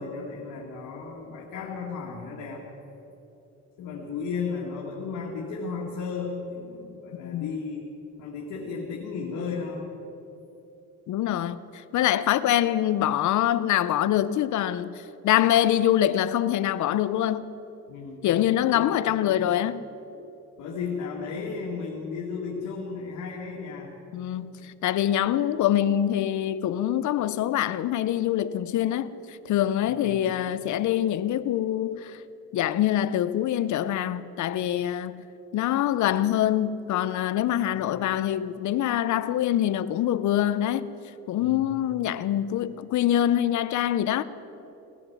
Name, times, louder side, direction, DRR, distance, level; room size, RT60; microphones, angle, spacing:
voice 1, 0.0-2.6 3.8-7.9 8.2-9.9 17.9-18.3 18.6-19.4 20.6-23.9 29.8-30.3 37.7-38.0 41.4-41.6, left 5 dB, 90° left, 2.0 m, -34 dB
voice 2, 11.1-17.5 18.2-19.8 24.1-32.2 32.5-35.3 35.5-40.9 41.3-44.2, left 11 dB, 75° left, 0.6 m, -25 dB
18.5 x 11.0 x 7.2 m
cardioid pair, 90°, 30 cm